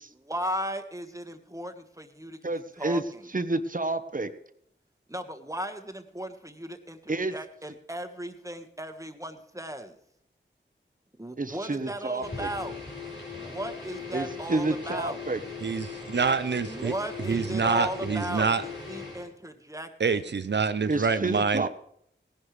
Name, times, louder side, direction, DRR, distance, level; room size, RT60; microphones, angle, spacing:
voice 1, 0.2-2.4 2.8-3.2 5.1-10.0 11.2-12.8 13.3-15.2 16.6-20.3, equal, 15° right, 7 dB, 1.5 m, -36 dB
voice 2, 2.4-3.0 3.3-4.3 7.1-7.3 11.4-12.5 14.1-15.4 20.9-21.7, right 2 dB, 45° right, 9 dB, 1.1 m, -29 dB
sound 1, 12.2-19.3, left 4 dB, 85° left, 5.2 m, -39 dB
voice 3, 15.6-16.9 17.3-18.6 20.0-21.7, right 5 dB, 65° right, 11 dB, 0.6 m, -26 dB
18.0 x 11.0 x 3.3 m, 0.70 s
wide cardioid pair, 55°, 20 cm